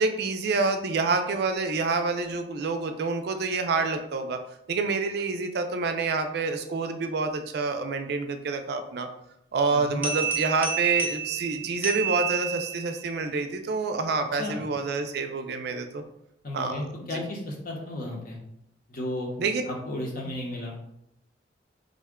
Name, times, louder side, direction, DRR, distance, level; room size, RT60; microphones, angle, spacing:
voice 1, 0.0-4.4 4.7-9.1 9.5-16.0 16.5-16.8 17.1-17.2 19.4-19.6, right 4 dB, 60° right, 7 dB, 0.4 m, -27 dB
voice 2, 9.7-10.0 14.3-14.6 16.4-18.4 18.9-19.3 19.7-20.8, left 1 dB, 50° left, 0 dB, 0.7 m, -34 dB
sound 1, 10.0-13.0, right 8 dB, 10° right, 0.5 m, -29 dB
3.6 x 2.1 x 3.5 m, 0.78 s
head